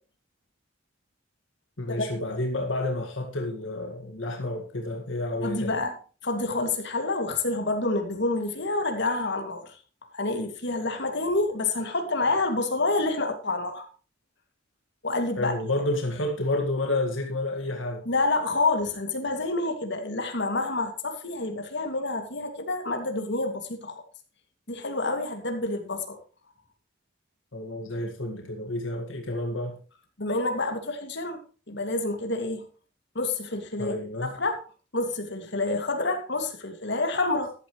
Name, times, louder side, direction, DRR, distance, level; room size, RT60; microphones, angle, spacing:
voice 1, 1.8-5.8 15.4-18.1 27.5-29.8 33.8-34.3, left 2 dB, 85° left, 2 dB, 2.0 m, -30 dB
voice 2, 5.4-5.9 6.2-9.8 10.1-13.9 15.0-15.5 18.1-24.0 24.7-26.2 30.2-31.4 31.7-32.7 33.1-34.6 34.9-37.5, left 2 dB, 65° left, 4 dB, 2.4 m, -28 dB
14.0 x 11.5 x 3.2 m, 0.37 s
head